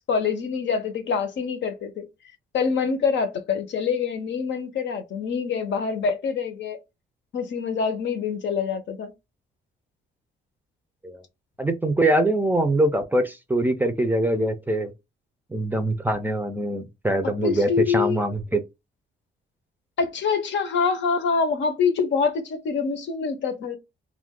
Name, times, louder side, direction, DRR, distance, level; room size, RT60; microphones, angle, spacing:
voice 1, 0.1-2.1 2.5-6.8 7.3-9.1 17.2-18.2 20.0-23.8, left 5 dB, 65° left, 0.7 m, -25 dB
voice 2, 11.6-14.9 15.5-18.6, right 1 dB, 10° right, 0.5 m, -23 dB
2.4 x 2.2 x 3.5 m
cardioid pair, 90°, 20 cm